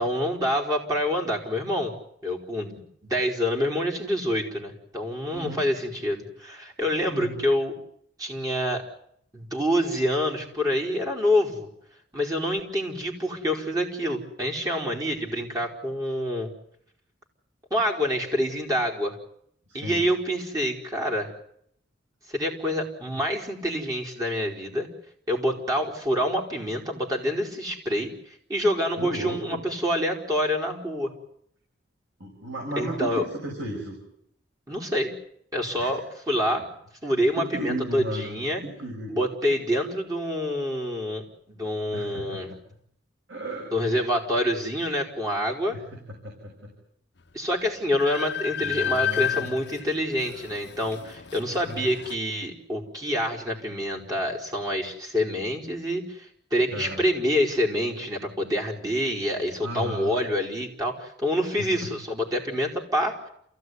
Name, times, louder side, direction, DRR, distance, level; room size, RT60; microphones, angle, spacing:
voice 1, 0.0-1.9 2.2-7.7 8.2-8.8 9.3-11.7 12.1-16.5 17.7-19.2 19.7-21.3 22.3-24.9 25.3-31.1 32.8-33.2 34.7-35.1 35.5-36.7 37.0-38.6 39.1-42.5 43.7-45.8 47.3-63.2, equal, 20° right, -1 dB, 4.8 m, -27 dB
voice 2, 5.3-5.6 7.1-7.4 19.7-20.1 29.0-29.7 32.2-34.0 35.8-35.9 37.0-38.3 38.6-39.2 41.9-42.4 43.3-43.7 45.7-46.7 48.6-49.6 51.6-51.9 56.6-57.0 59.6-60.2 61.6-61.9, right 1 dB, 85° right, 0 dB, 6.6 m, -35 dB
Train, 47.2-47.3 47.6-52.1, left 10 dB, 65° left, 1.1 m, -32 dB
28.5 x 16.0 x 9.6 m, 0.71 s
head